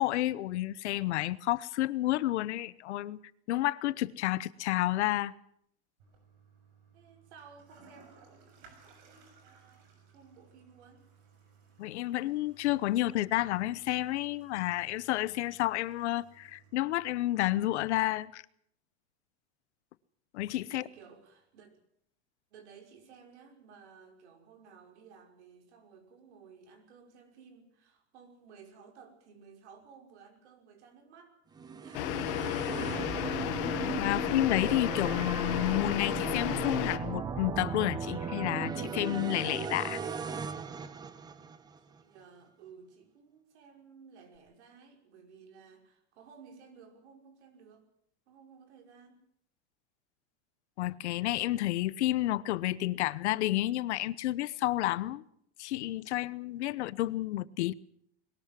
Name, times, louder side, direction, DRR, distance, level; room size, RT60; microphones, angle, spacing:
voice 1, 0.0-3.2 3.5-5.3 11.8-18.4 20.3-20.8 33.6-40.0 50.8-55.2 55.6-57.7, left 16 dB, 85° left, 1.0 m, -30 dB
Toilet flush, 6.0-18.0, right 5 dB, 50° right, 6.7 m, -60 dB
voice 2, 6.9-8.4 9.4-9.9 10.1-11.0 20.7-21.7 22.5-31.4 31.6-32.2 41.9-47.9 48.3-49.2, right 6 dB, 85° right, 5.7 m, -56 dB
sound 1, 31.6-41.8, right 6 dB, 10° right, 0.8 m, -37 dB
sound 2, 31.9-37.0, left 15 dB, 55° left, 1.3 m, -33 dB
21.0 x 19.0 x 7.6 m
supercardioid pair, 165°, 33 cm